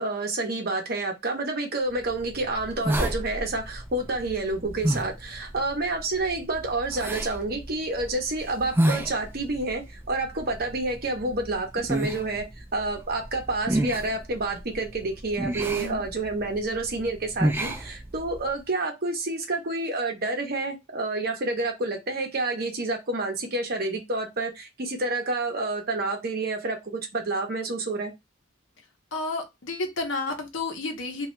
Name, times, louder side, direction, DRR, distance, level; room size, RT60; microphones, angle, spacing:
voice 1, 0.0-28.1, right 2 dB, 50° right, 0.8 m, -29 dB
sound 1, 2.0-18.6, right 1 dB, 10° right, 0.3 m, -32 dB
voice 2, 29.1-31.3, left 3 dB, 70° left, 0.8 m, -31 dB
2.7 x 2.3 x 3.1 m
head